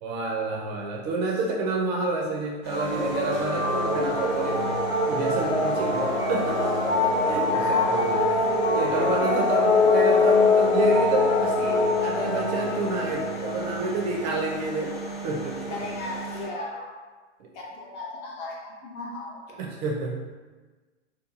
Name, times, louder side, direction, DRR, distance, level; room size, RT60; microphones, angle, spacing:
voice 1, 0.0-4.8 5.1-6.9 7.3-15.9 17.4-17.5 19.6-20.2, right 3 dB, 35° right, -1 dB, 0.4 m, -29 dB
sound 1, 2.6-16.5, right 3 dB, 55° left, 0.8 m, -37 dB
sound 2, 2.7-14.5, left 3 dB, 90° left, 0.9 m, -24 dB
voice 2, 7.3-8.1 8.9-9.8 15.7-16.9 17.5-19.4, left 2 dB, 30° left, -2 dB, 0.5 m, -35 dB
2.8 x 2.2 x 2.5 m, 1.3 s
hypercardioid pair, 110°, 35 cm